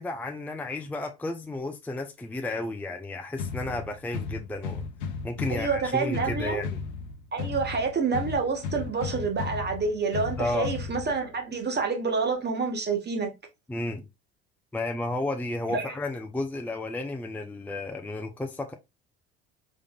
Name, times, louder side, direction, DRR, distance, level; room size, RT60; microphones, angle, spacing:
voice 1, 0.0-4.8 5.2-6.8 10.4-10.7 13.7-14.1 14.7-18.7, left 2 dB, 5° left, 0.5 m, -32 dB
sound 1, 3.4-11.4, left 5 dB, 80° left, 0.8 m, -35 dB
voice 2, 5.5-6.6 7.3-13.3 15.7-15.9, right 4 dB, 30° right, 1.4 m, -28 dB
3.7 x 3.6 x 2.3 m
hypercardioid pair, 70°, 34 cm